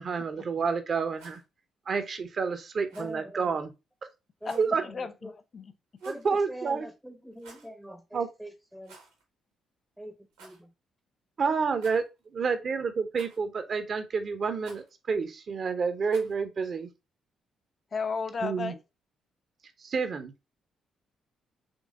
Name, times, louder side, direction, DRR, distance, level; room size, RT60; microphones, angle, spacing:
voice 1, 0.0-1.4 1.9-3.7 4.5-4.8 6.0-6.9 8.1-8.3 11.4-16.9 18.4-18.7 19.8-20.3, right 5 dB, 45° right, 0.7 m, -29 dB
Rattle, 1.0-1.4 2.9-3.2 4.4-4.7 6.0-6.4 7.3-7.7 8.8-9.2 9.5-9.6 10.3-10.6 11.7-12.2 13.1-13.6 14.6-14.9 16.1-16.4, right 3 dB, 75° right, 1.2 m, -53 dB
voice 2, 2.9-3.7 4.4-5.3 6.0-9.0 10.0-10.7, equal, 5° right, 0.7 m, -43 dB
voice 3, 4.8-5.7 17.9-18.8, left 5 dB, 40° left, 0.5 m, -34 dB
5.3 x 3.2 x 2.4 m
figure-of-eight pair, 40°, 0 cm